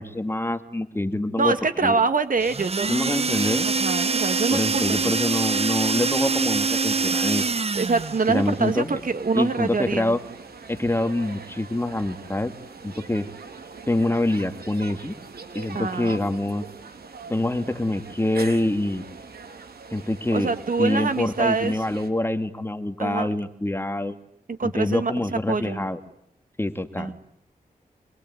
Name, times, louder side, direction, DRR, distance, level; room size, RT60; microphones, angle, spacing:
voice 1, 0.0-1.5 1.8-2.0 2.9-3.7 4.5-7.4 8.3-9.0 9.3-10.2 10.7-12.5 12.8-13.3 13.9-15.2 15.5-16.6 17.3-19.1 19.9-20.5 20.8-24.2 24.6-26.0 26.6-27.1, left 1 dB, 15° left, 8 dB, 2.0 m, -25 dB
voice 2, 1.4-3.3 3.8-5.1 7.7-10.2 15.7-16.2 20.3-21.8 23.0-23.3 24.5-25.1 25.5-25.9 27.0-27.1, right 4 dB, 60° right, 9 dB, 2.3 m, -25 dB
sound 1, 2.4-8.3, right 4 dB, 40° right, 1.0 m, -24 dB
sound 2, 7.8-22.1, right 4 dB, 80° right, 3.1 m, -42 dB
25.0 x 22.5 x 9.5 m, 0.74 s
wide cardioid pair, 95°, 16 cm